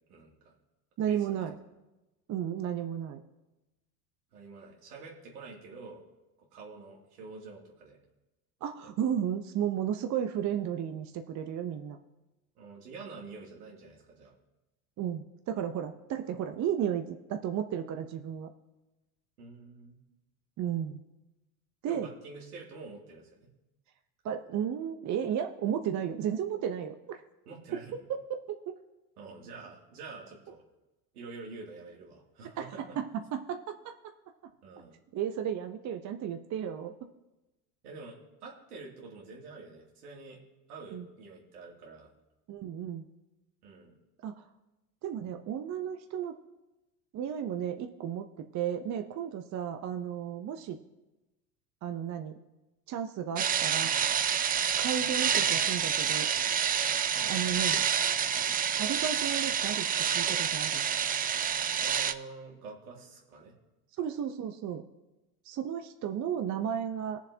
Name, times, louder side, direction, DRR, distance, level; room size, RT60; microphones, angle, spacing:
voice 1, 0.1-0.6 1.0-1.4 4.3-6.0 6.4-8.0 12.6-14.3 19.4-20.0 21.9-23.4 27.5-28.0 29.2-30.6 31.1-33.0 34.6-34.9 37.8-38.2 38.4-40.4 40.7-42.1 43.6-44.0 57.1-57.4 61.8-63.5, right 4 dB, 80° right, -2 dB, 2.7 m, -47 dB
voice 2, 1.0-1.5 2.3-3.2 8.6-12.0 15.0-18.5 20.6-21.0 21.8-22.1 24.2-27.2 27.7-27.8 28.1-28.2 28.5-28.8 32.6-32.7 33.0-33.8 35.1-36.9 40.9-41.1 42.5-43.0 44.2-44.4 45.0-46.3 47.1-48.3 48.5-50.8 51.8-52.4 52.9-53.9 54.8-56.3 57.3-57.8 58.7-59.9 60.1-60.8 64.0-64.8 65.4-67.2, right 9 dB, 40° right, 6 dB, 0.8 m, -33 dB
sound 1, 53.4-62.1, right 8 dB, 20° right, 0.4 m, -28 dB
20.0 x 7.2 x 2.8 m, 1.0 s
hypercardioid pair, 75°, 45 cm